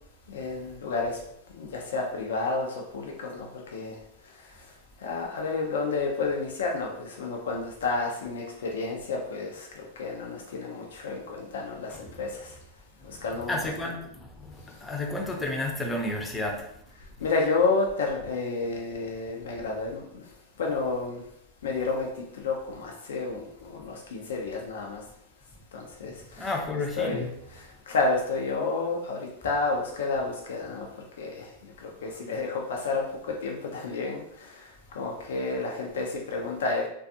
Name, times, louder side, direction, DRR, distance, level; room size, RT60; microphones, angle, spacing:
voice 1, 0.3-1.2 1.5-4.0 4.4-4.5 5.0-12.6 13.0-13.7 17.2-20.2 20.6-21.2 21.6-25.0 25.7-27.2 27.5-30.9 31.2-36.8, left 3 dB, 80° left, 0 dB, 0.4 m, -31 dB
voice 2, 13.0-16.8 26.4-27.3, left 2 dB, 15° left, 1 dB, 0.5 m, -32 dB
2.4 x 2.3 x 2.6 m, 0.76 s
hypercardioid pair, 120°, 0 cm